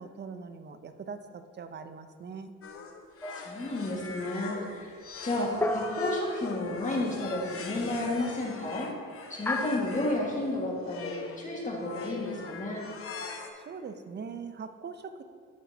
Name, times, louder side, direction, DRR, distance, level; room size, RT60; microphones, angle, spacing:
voice 1, 0.0-2.5 13.6-15.2, right 5 dB, 35° right, 9 dB, 0.6 m, -42 dB
sound 1, 2.6-10.2 10.8-11.4 11.8-13.5, left 4 dB, 45° left, 1.0 m, -42 dB
sound 2, 3.2-3.8 5.6-6.9 9.5-10.3, left 2 dB, 10° left, 0.5 m, -33 dB
voice 2, 3.3-8.9 9.3-12.8, left 2 dB, 25° left, -3 dB, 1.8 m, -32 dB
14.0 x 5.7 x 2.8 m, 2.1 s
cardioid pair, 90°, 30 cm